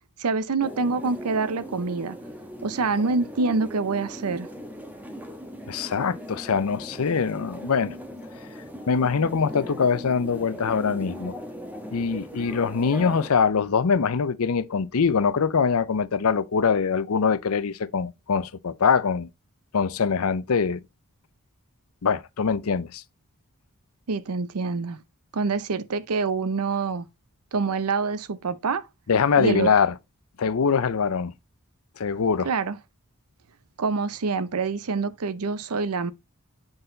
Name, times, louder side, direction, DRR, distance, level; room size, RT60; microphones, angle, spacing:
voice 1, 0.2-2.2 2.6-4.5 24.1-25.0 25.3-27.1 27.5-28.9 29.4-29.7 32.4-32.8 33.8-36.1, right 4 dB, 80° right, 0.6 m, -26 dB
sound 1, 0.6-13.3, equal, 5° right, 1.2 m, -39 dB
voice 2, 5.7-8.0 8.9-11.4 11.9-19.3 19.7-20.8 22.0-23.0 29.1-29.9 30.4-31.3 32.0-32.5, left 5 dB, 70° left, 0.6 m, -23 dB
7.9 x 4.0 x 3.8 m
head